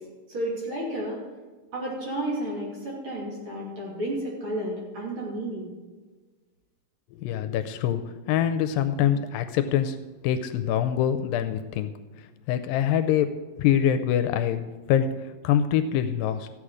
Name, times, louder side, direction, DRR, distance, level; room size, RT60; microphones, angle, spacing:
voice 1, 0.3-1.2 1.7-5.7, right 1 dB, 35° right, -4 dB, 3.3 m, -32 dB
voice 2, 7.1-10.0 10.2-11.9 12.2-16.5, left 9 dB, 80° left, 10 dB, 2.2 m, -25 dB
14.0 x 8.7 x 4.9 m, 1.3 s
omnidirectional pair, 4.1 m